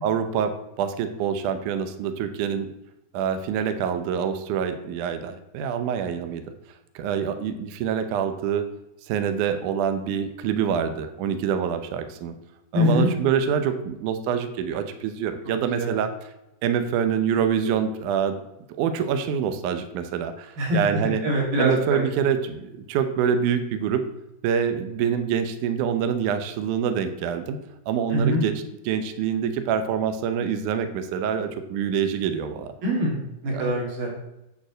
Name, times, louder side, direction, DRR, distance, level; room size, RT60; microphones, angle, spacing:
voice 1, 0.0-2.7 3.1-6.4 7.0-8.7 9.1-12.4 12.7-16.1 16.6-18.4 18.8-21.2 21.6-24.0 24.4-27.6 27.9-32.7 33.5-33.6, right 8 dB, 80° right, 8 dB, 1.8 m, -26 dB
voice 2, 12.7-13.1 15.8-15.9 20.6-22.1 28.1-28.4 32.8-33.2 33.4-34.1, equal, 60° right, -2 dB, 4.2 m, -23 dB
8.4 x 5.3 x 7.7 m, 0.88 s
omnidirectional pair, 4.8 m